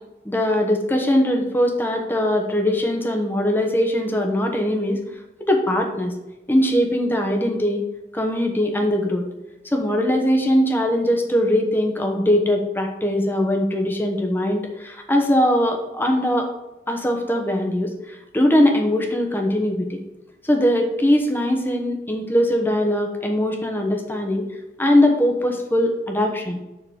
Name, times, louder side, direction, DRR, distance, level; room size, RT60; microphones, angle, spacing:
voice 1, 0.2-5.0 5.5-6.1 6.5-7.8 8.1-9.3 9.7-16.5 16.9-20.0 20.4-24.4 24.8-26.6, left 1 dB, 10° left, 2 dB, 0.9 m, -21 dB
6.9 x 3.8 x 6.3 m, 0.97 s
head